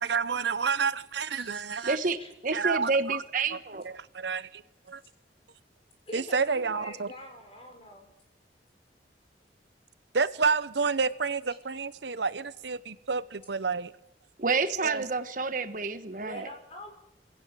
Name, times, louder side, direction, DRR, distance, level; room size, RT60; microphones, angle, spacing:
voice 1, 0.0-2.0 2.5-3.2 3.5-3.6 3.8-4.6 4.9-5.0 6.1-7.1 10.1-13.9 14.8-15.0, right 5 dB, 75° right, 15 dB, 0.9 m, -29 dB
voice 2, 1.3-2.3 6.1-8.1 16.2-16.9, left 1 dB, 35° left, 3 dB, 5.8 m, -45 dB
voice 3, 1.8-2.2 2.4-3.8 14.4-16.5, right 4 dB, 50° right, 10 dB, 1.3 m, -29 dB
20.5 x 17.0 x 7.6 m, 0.87 s
head